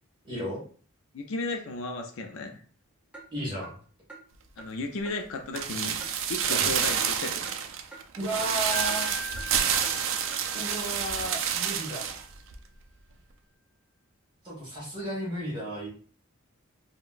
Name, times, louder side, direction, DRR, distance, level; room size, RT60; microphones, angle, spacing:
voice 1, 0.2-0.6 3.3-3.8 6.5-6.7 8.2-9.1 10.5-12.2 14.4-15.9, right 1 dB, 20° right, -5 dB, 1.5 m, -34 dB
voice 2, 1.1-2.6 4.6-7.5, left 2 dB, 65° left, 5 dB, 0.4 m, -35 dB
Clock, 3.1-3.3 3.6-3.7 4.1-4.2 4.6-4.7 5.0-5.2 5.5-5.6 6.0-6.1 6.5-6.6 7.0-7.1 7.4-7.6 7.9-8.0 8.4-8.5 8.9-9.0 9.4-9.5 9.8-9.9 10.3-10.4, right 3 dB, 5° right, 0.5 m, -45 dB
sound 1, 5.5-12.2 12.5-12.6, right 8 dB, 60° right, 0.3 m, -29 dB
Wind chime, 8.7-11.8, left 2 dB, 15° left, 0.9 m, -41 dB
3.7 x 2.1 x 2.4 m, 0.43 s
head